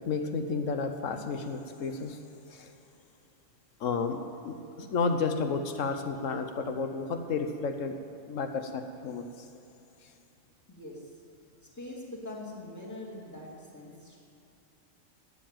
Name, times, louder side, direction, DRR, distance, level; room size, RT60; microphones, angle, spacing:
voice 1, 0.0-2.2 2.5-2.7 3.8-8.0 8.3-9.3, left 4 dB, 85° left, 7 dB, 1.3 m, -32 dB
voice 2, 10.7-11.1 11.6-14.2, left 1 dB, 15° left, -3 dB, 2.6 m, -43 dB
12.0 x 9.8 x 9.1 m, 2.8 s
omnidirectional pair, 1.3 m